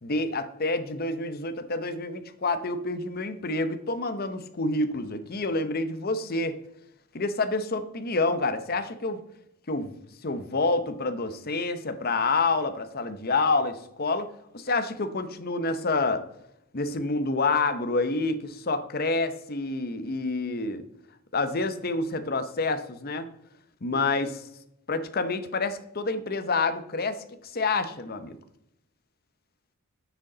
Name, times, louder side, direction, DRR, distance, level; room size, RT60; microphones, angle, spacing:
voice 1, 0.0-6.6 7.1-9.2 9.7-9.9 10.2-16.3 16.7-20.8 21.3-23.3 23.8-24.5 24.9-28.4, left 3 dB, 45° left, 9 dB, 0.8 m, -28 dB
9.4 x 6.6 x 3.9 m, 0.78 s
head